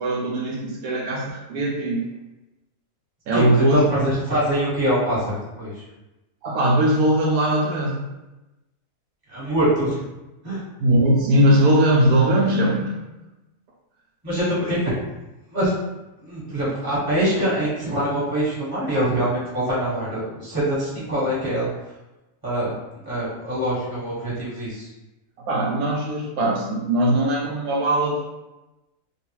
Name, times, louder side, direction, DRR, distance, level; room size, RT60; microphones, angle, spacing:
voice 1, 0.0-2.0 3.3-3.8 6.4-8.1 10.8-13.0 21.0-21.1 25.5-28.2, right 1 dB, 80° right, -2 dB, 1.0 m, -20 dB
voice 2, 3.3-5.8 9.3-10.0 10.4-10.6 14.2-14.9 15.5-15.7 16.2-21.7 22.4-22.7 23.0-24.9, right 1 dB, 15° right, -9 dB, 1.3 m, -24 dB
3.0 x 2.3 x 2.9 m, 1.0 s
omnidirectional pair, 1.5 m